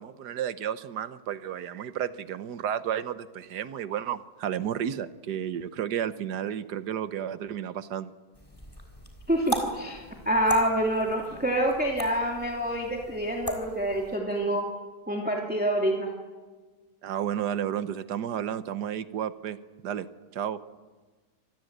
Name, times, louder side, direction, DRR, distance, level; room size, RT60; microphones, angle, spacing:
voice 1, 0.0-8.1 17.0-19.6 19.8-20.1 20.3-20.6, right 9 dB, 80° right, 13 dB, 1.6 m, -32 dB
sound 1, 8.3-14.2, right 1 dB, 15° left, 3.6 m, -38 dB
voice 2, 9.3-14.7 15.1-16.1, right 1 dB, 5° right, 0 dB, 2.5 m, -27 dB
26.5 x 20.5 x 8.0 m, 1.4 s
omnidirectional pair, 1.7 m